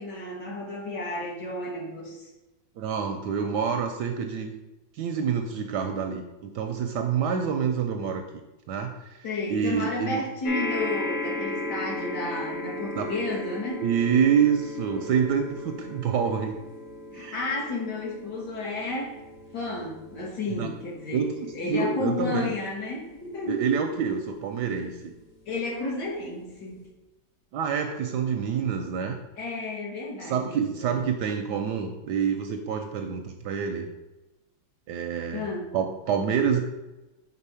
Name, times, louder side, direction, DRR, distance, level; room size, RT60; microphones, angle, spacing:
voice 1, 0.0-2.3 9.2-13.8 17.1-19.1 19.5-23.6 25.5-26.8 29.4-30.9 35.3-35.7, left 2 dB, 60° left, -3 dB, 2.0 m, -32 dB
voice 2, 2.8-4.6 4.9-8.2 8.7-10.2 13.0-13.1 13.8-16.6 17.1-17.4 20.6-20.7 21.1-22.5 23.5-25.1 27.5-29.2 30.2-33.9 34.9-35.5 35.7-36.6, right 7 dB, 75° right, 5 dB, 1.0 m, -27 dB
sound 1, 10.4-25.0 25.7-25.8 26.1-26.2, left 1 dB, 85° left, 2.3 m, -37 dB
5.3 x 4.1 x 5.5 m, 1.0 s
omnidirectional pair, 2.1 m